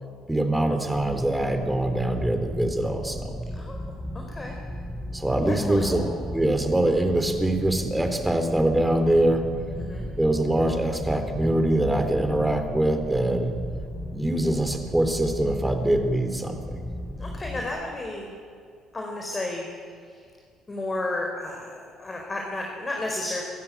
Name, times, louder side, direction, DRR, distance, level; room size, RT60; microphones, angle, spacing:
voice 1, 0.3-3.4 5.1-9.5 10.1-13.5 14.1-16.8, right 1 dB, 10° right, 6 dB, 3.6 m, -24 dB
sound 1, 0.9-17.7, equal, 10° left, 4.0 m, -36 dB
voice 2, 4.1-4.5 5.4-6.1 9.8-10.0 17.2-18.3 18.9-19.6 20.7-23.4, left 2 dB, 25° left, 1 dB, 4.4 m, -32 dB
25.0 x 13.0 x 8.8 m, 2.2 s
hypercardioid pair, 60°, 0 cm